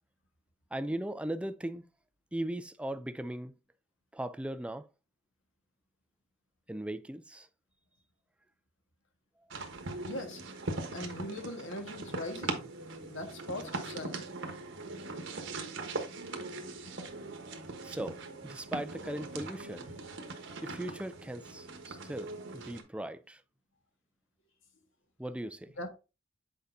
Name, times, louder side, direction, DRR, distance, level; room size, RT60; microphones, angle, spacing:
voice 1, 0.7-1.9 2.3-3.6 4.1-4.9 6.7-7.5 17.8-19.9 20.6-23.4 25.2-25.7, right 1 dB, 5° right, 0.4 m, -38 dB
sound 1, 9.5-22.8, right 3 dB, 65° right, 1.2 m, -41 dB
voice 2, 10.0-10.4 10.9-12.7 13.1-14.3 25.8-25.9, left 1 dB, 70° left, 1.5 m, -40 dB
8.0 x 4.9 x 2.6 m
head